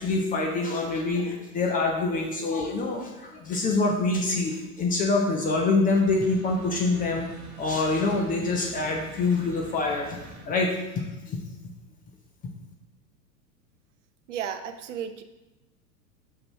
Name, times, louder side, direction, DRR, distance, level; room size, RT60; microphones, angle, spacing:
voice 1, 0.0-7.3 7.6-10.2 10.5-11.4, left 3 dB, 15° left, 1 dB, 0.6 m, -25 dB
sound 1, 6.1-10.5, right 1 dB, 20° right, 1.2 m, -45 dB
voice 2, 14.3-15.2, right 8 dB, 50° right, 9 dB, 0.5 m, -33 dB
5.8 x 5.2 x 4.2 m, 1.1 s
figure-of-eight pair, 95°, 49 cm